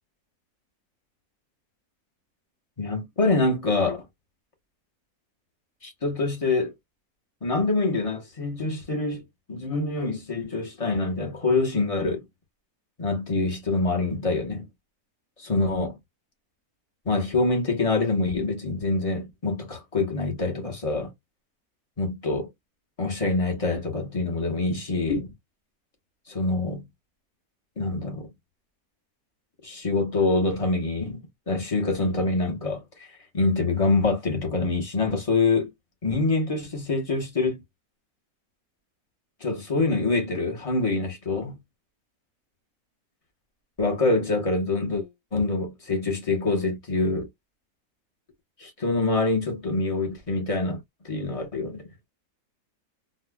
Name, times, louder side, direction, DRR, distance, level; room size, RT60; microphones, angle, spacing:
voice 1, 2.8-4.0 5.8-6.7 7.4-9.2 9.5-12.2 13.0-14.7 15.4-16.0 17.0-21.1 22.0-22.5 23.0-25.3 26.3-26.8 27.8-28.3 29.6-32.8 33.3-35.7 36.0-37.6 39.4-41.6 43.8-47.3 48.6-50.8 51.0-51.9, left 3 dB, 25° left, 1.1 m, -25 dB
4.2 x 2.5 x 2.2 m
omnidirectional pair, 1.6 m